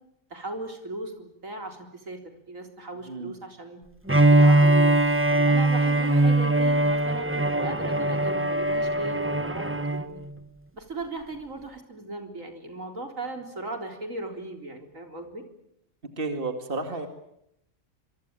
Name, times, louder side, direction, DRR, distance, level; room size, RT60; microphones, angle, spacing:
voice 1, 0.3-2.2 2.5-3.8 4.3-5.0 5.3-10.2 10.7-15.4, right 2 dB, 75° right, 5 dB, 4.3 m, -37 dB
Bowed string instrument, 4.1-10.1, right 2 dB, 10° right, 0.9 m, -21 dB
voice 2, 16.2-17.1, right 3 dB, 45° right, 7 dB, 2.5 m, -31 dB
27.0 x 24.0 x 9.0 m, 0.78 s
omnidirectional pair, 1.4 m